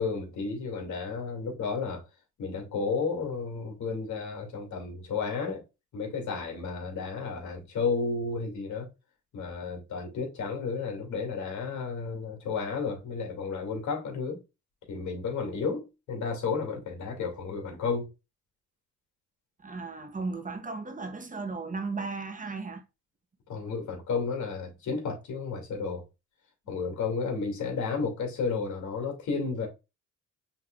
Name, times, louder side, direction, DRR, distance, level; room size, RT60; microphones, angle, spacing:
voice 1, 0.0-2.0 2.4-5.6 5.9-8.9 9.3-14.4 14.9-18.1 23.5-26.0 26.7-29.7, left 5 dB, 70° left, 2.4 m, -32 dB
voice 2, 19.6-22.8, right 3 dB, 25° right, 1.0 m, -35 dB
5.7 x 3.5 x 2.4 m
cardioid pair, 90°, 30 cm